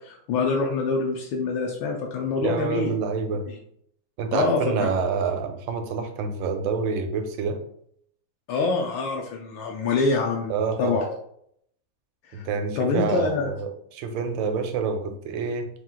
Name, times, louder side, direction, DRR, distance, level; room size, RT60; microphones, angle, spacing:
voice 1, 0.0-2.9 3.5-3.6 4.3-4.9 8.5-10.5 10.8-11.1 12.3-12.5 12.8-13.5, left 4 dB, 80° left, 1 dB, 1.3 m, -25 dB
voice 2, 2.4-3.5 4.2-7.6 10.5-11.0 12.3-15.7, right 5 dB, 75° right, 6 dB, 1.3 m, -27 dB
4.4 x 2.4 x 3.7 m, 0.69 s
omnidirectional pair, 2.2 m